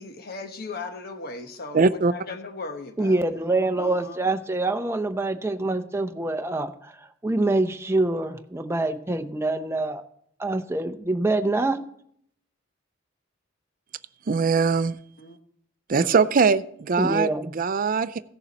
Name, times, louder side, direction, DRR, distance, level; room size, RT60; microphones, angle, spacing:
voice 1, 0.0-1.8 2.1-3.2 3.8-4.2 15.2-15.4, left 3 dB, 55° left, 7 dB, 1.1 m, -37 dB
voice 2, 1.7-2.1 14.3-15.0 15.9-18.2, right 5 dB, 45° right, 15 dB, 0.5 m, -21 dB
voice 3, 3.0-7.0 7.2-10.0 10.4-11.9 17.0-17.5, right 2 dB, 15° right, 8 dB, 0.7 m, -25 dB
16.0 x 6.8 x 4.1 m, 0.67 s
head